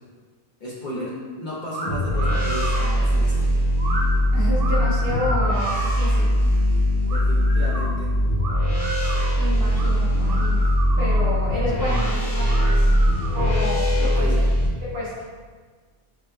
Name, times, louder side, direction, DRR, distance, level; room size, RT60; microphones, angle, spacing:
voice 1, 0.6-1.1 1.4-3.6 7.1-8.1 13.9-14.5, equal, 50° left, -8 dB, 1.1 m, -34 dB
sound 1, 1.7-1.9 2.2-2.9 3.8-4.1 4.5-6.1 7.1-7.9 8.4-9.3 9.8-9.9 10.2-11.3 11.8-12.1 12.4-13.6, right 1 dB, 60° right, 1.1 m, -32 dB
sound 2, 1.8-14.7, equal, 30° left, 1.3 m, -21 dB
voice 2, 4.3-6.3 9.4-10.6 11.0-12.9 13.3-13.9 14.2-14.3 14.9-15.1, left 1 dB, 75° right, -9 dB, 1.8 m, -29 dB
7.9 x 3.1 x 2.2 m, 1.5 s
omnidirectional pair, 1.0 m